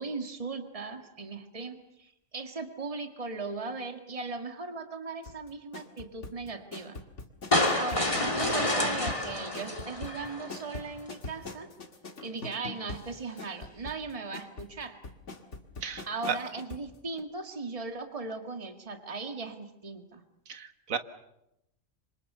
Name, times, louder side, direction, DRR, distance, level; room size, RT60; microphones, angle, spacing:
voice 1, 0.0-7.0 7.7-11.7 12.2-15.0 16.1-20.2, right 3 dB, 25° right, 6 dB, 2.0 m, -38 dB
sound 1, 5.2-16.9 17.2-17.3, left 3 dB, 65° left, 2.3 m, -43 dB
sound 2, 7.5-10.8, left 1 dB, 25° left, 2.6 m, -28 dB
voice 2, 15.8-16.4 20.5-21.0, right 6 dB, 90° right, 9 dB, 1.8 m, -34 dB
26.0 x 26.0 x 6.8 m, 0.85 s
omnidirectional pair, 1.4 m